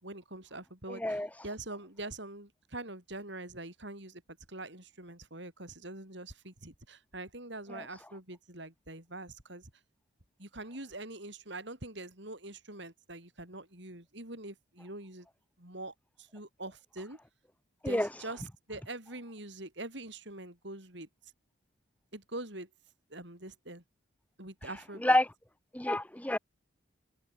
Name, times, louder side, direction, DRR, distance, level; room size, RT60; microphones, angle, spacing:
voice 1, 0.0-4.2 4.5-9.7 10.4-15.3 15.6-17.2 17.8-21.1 22.1-22.7 23.1-23.8 24.4-25.2, right 2 dB, 55° right, 6.4 m, -44 dB
voice 2, 0.9-1.3 7.7-7.8 17.8-18.1 25.0-25.3 25.7-26.4, left 1 dB, 5° left, 1.0 m, -28 dB
head